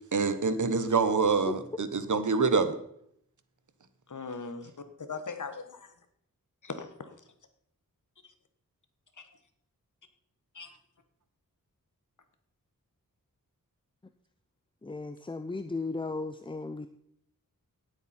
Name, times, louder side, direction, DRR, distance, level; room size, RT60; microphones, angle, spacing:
voice 1, 0.1-2.8, right 4 dB, 60° right, 11 dB, 1.2 m, -26 dB
voice 2, 1.5-1.8 14.8-16.9, left 3 dB, 15° left, 11 dB, 0.5 m, -35 dB
voice 3, 4.1-4.7 5.0-5.9 6.6-7.2 8.2-8.3 9.1-9.2 10.5-10.7, left 4 dB, 60° left, 8 dB, 1.4 m, -40 dB
17.0 x 8.1 x 4.4 m, 0.71 s
wide cardioid pair, 85°, 34 cm